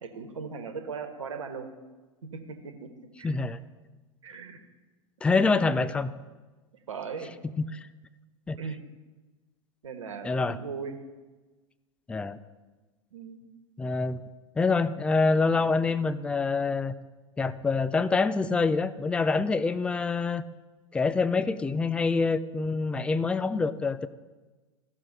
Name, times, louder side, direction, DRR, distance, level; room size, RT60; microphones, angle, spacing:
voice 1, 0.0-1.7 2.3-2.9 3.2-3.3 4.2-4.6 5.3-5.7 6.9-7.3 8.6-8.8 9.8-11.0 13.1-13.4, right 5 dB, 70° right, 7 dB, 1.3 m, -38 dB
voice 2, 3.2-3.6 5.2-6.1 7.6-7.8 8.5-8.6 10.2-10.6 12.1-12.4 13.8-14.2 14.6-16.9 17.4-20.4 20.9-24.1, left 4 dB, 5° left, 13 dB, 0.3 m, -26 dB
15.0 x 6.4 x 4.0 m, 1.3 s
figure-of-eight pair, 95°, 17 cm